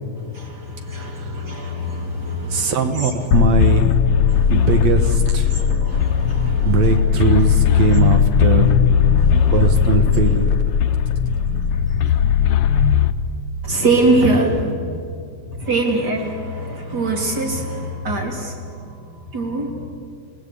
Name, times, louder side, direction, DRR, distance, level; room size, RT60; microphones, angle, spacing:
voice 1, 0.2-3.1 4.2-4.9 5.5-7.1 7.4-7.5 7.9-8.1 8.6-8.7 9.1-9.8 10.1-10.2 11.2-12.3 13.6-14.9 15.5-19.8, right 1 dB, 30° right, 1 dB, 3.7 m, -24 dB
voice 2, 1.0-1.5 2.5-3.9 4.5-5.5 6.6-8.8 9.5-10.5, right 5 dB, 65° right, 7 dB, 2.3 m, -20 dB
sound 1, 3.3-13.1, left 8 dB, 75° left, 1.3 m, -17 dB
28.5 x 18.0 x 8.4 m, 2.4 s
omnidirectional pair, 3.5 m